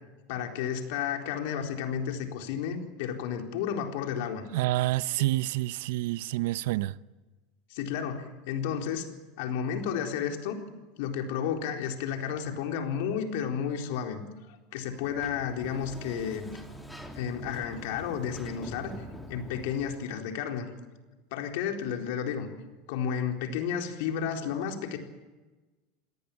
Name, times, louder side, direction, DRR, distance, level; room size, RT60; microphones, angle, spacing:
voice 1, 0.3-4.4 7.7-9.1 9.4-10.6 11.0-14.2 14.7-16.5 17.1-18.9 19.3-20.7 21.3-22.5 22.9-25.0, left 8 dB, 70° left, 4.1 m, -32 dB
voice 2, 4.5-7.0, right 16 dB, 70° right, 0.8 m, -28 dB
Sliding door, 14.8-20.2, equal, 5° left, 3.4 m, -45 dB
28.0 x 18.0 x 8.8 m
hypercardioid pair, 95°, 0 cm